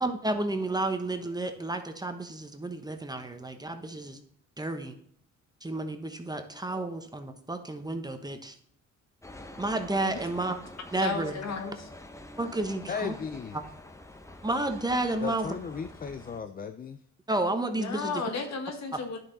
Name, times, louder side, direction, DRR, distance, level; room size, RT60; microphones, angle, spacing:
voice 1, 0.0-4.2 4.6-4.9 5.6-8.5 9.6-10.6 10.9-11.4 12.4-13.2 14.4-15.6 17.3-18.2, right 2 dB, 15° right, 6 dB, 1.1 m, -31 dB
sound 1, 9.2-16.4, left 1 dB, 10° left, 0.9 m, -47 dB
voice 2, 10.9-11.9 17.7-19.2, left 5 dB, 60° left, 5 dB, 1.8 m, -34 dB
voice 3, 12.9-13.6 15.2-17.0, left 6 dB, 30° left, 10 dB, 0.5 m, -35 dB
10.5 x 6.3 x 4.0 m, 0.65 s
cardioid pair, 90°, 30 cm